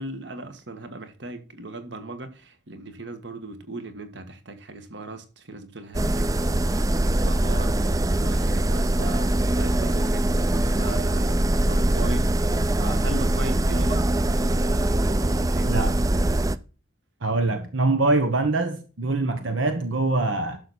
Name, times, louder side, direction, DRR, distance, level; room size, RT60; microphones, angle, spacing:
voice 1, 0.0-12.4 12.7-16.0, right 2 dB, 65° right, 1.7 m, -38 dB
sound 1, 5.9-16.6, right 1 dB, 20° right, 0.5 m, -22 dB
voice 2, 17.2-20.6, right 2 dB, 85° right, 1.2 m, -24 dB
11.5 x 6.9 x 4.3 m
head